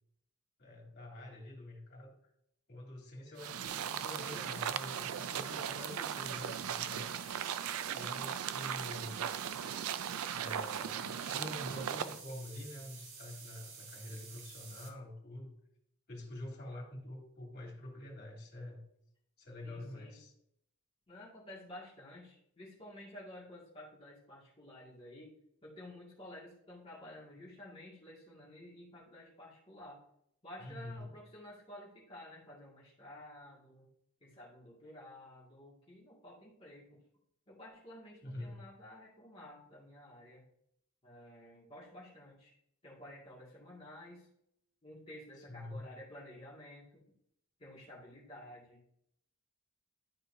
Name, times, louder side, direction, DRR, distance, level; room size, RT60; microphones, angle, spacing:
voice 1, 0.6-2.1 2.7-7.2 7.9-9.3 10.3-15.5 16.1-18.8 19.4-20.3 30.6-31.1 38.2-38.6 45.5-45.8, left 1 dB, 45° left, -3 dB, 3.1 m, -46 dB
sound 1, 3.4-12.2, right 9 dB, 80° right, 0.4 m, -38 dB
sound 2, 3.6-14.9, right 5 dB, 60° right, 1.5 m, -51 dB
voice 2, 10.7-11.2 19.6-20.2 21.1-25.3 25.6-30.0 30.4-33.9 34.2-37.0 37.5-40.4 41.0-42.5 42.8-44.3 44.8-46.9 47.6-48.8, left 1 dB, 25° left, -7 dB, 2.2 m, -52 dB
12.0 x 4.5 x 2.7 m, 0.73 s
head